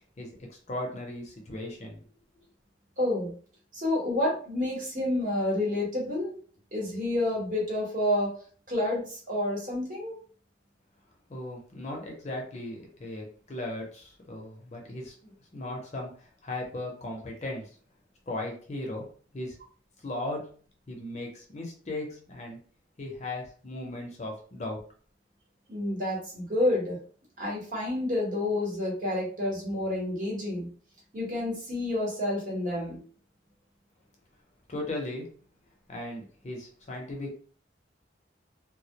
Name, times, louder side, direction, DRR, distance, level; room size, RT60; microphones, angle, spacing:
voice 1, 0.2-2.0 11.3-17.7 18.3-19.1 19.3-19.6 20.0-20.5 20.9-22.6 23.0-24.8 34.7-35.3 35.9-37.4, left 1 dB, 35° left, 0 dB, 0.6 m, -37 dB
voice 2, 3.0-3.3 3.7-6.3 6.7-8.3 8.7-10.2 25.7-27.0 27.4-30.7 31.1-33.0, left 1 dB, 45° right, -3 dB, 1.0 m, -29 dB
2.2 x 2.0 x 2.8 m, 0.43 s
head